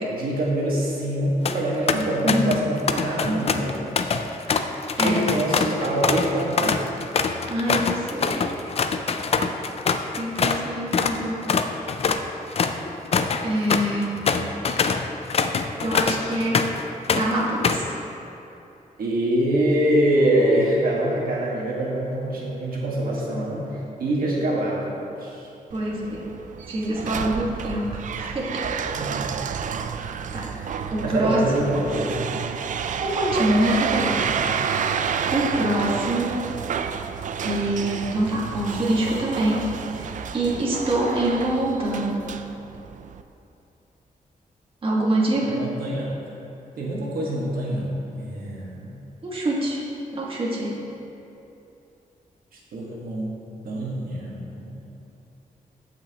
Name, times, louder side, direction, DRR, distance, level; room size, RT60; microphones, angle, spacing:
voice 1, 0.1-3.8 5.0-6.9 19.0-25.4 28.9-29.3 30.5-32.3 34.3-34.5 45.3-46.1 46.8-48.9 52.7-53.3 53.6-54.8, right 1 dB, 80° right, -4 dB, 1.5 m, -25 dB
sound 1, 1.2-1.6 1.9-2.6 2.9-10.6 10.9-11.2 11.5-16.8 17.1-17.9, left 5 dB, 45° left, 0.4 m, -24 dB
voice 2, 5.0-5.4 7.5-8.6 10.2-11.5 13.4-14.2 14.7-14.8 15.8-16.6 17.1-17.9 25.7-26.2 26.7-28.6 30.3-30.5 30.9-31.4 33.0-34.2 35.3-36.3 37.4-42.2 44.8-45.7 49.2-49.8 50.1-50.7, right 1 dB, 40° right, -5 dB, 1.6 m, -25 dB
sound 2, 25.7-43.2, right 7 dB, 60° right, 0.4 m, -30 dB
15.0 x 5.9 x 2.9 m, 2.8 s
wide cardioid pair, 135°, 15 cm